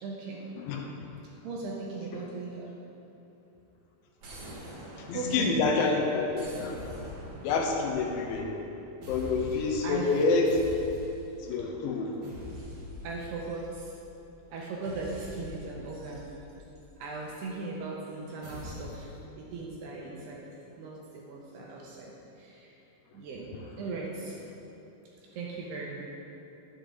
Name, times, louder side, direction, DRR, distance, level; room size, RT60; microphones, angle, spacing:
voice 1, 0.0-0.4 1.4-2.7 4.5-4.8 5.1-5.5 9.8-10.2 13.0-14.0 14.5-16.3 17.0-20.5 20.8-22.7 23.1-24.4 25.3-26.0, right 3 dB, 75° right, -3 dB, 2.6 m, -38 dB
voice 2, 0.6-0.9 5.1-6.8 7.4-8.5 9.1-10.6 11.5-12.1, left 4 dB, 80° left, 1 dB, 3.1 m, -27 dB
sound 1, 4.2-5.8 6.3-8.7 9.0-9.9 10.4-11.5 12.2-14.1 14.8-17.2 18.4-19.2, left 1 dB, 60° right, 1.6 m, -44 dB
12.0 x 8.0 x 3.8 m, 3.0 s
omnidirectional pair, 5.4 m